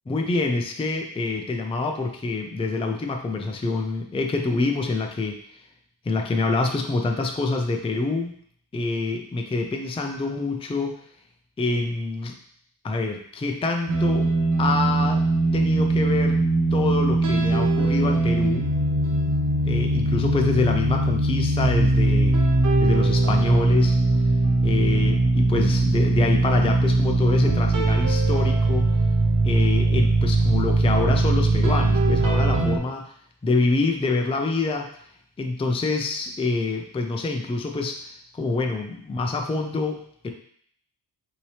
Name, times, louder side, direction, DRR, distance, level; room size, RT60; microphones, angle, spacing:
voice 1, 0.1-5.4 6.0-8.4 8.7-11.0 11.6-12.4 12.8-14.3 14.6-15.2 15.5-16.4 16.7-18.7 19.6-22.5 22.8-24.0 24.6-28.9 29.4-33.1 33.4-34.9 35.4-40.3, left 3 dB, 15° left, 4 dB, 0.4 m, -26 dB
sound 1, 13.9-32.8, right 2 dB, 45° right, 0.9 m, -21 dB
5.7 x 2.8 x 3.2 m, 0.63 s
wide cardioid pair, 120°, 43 cm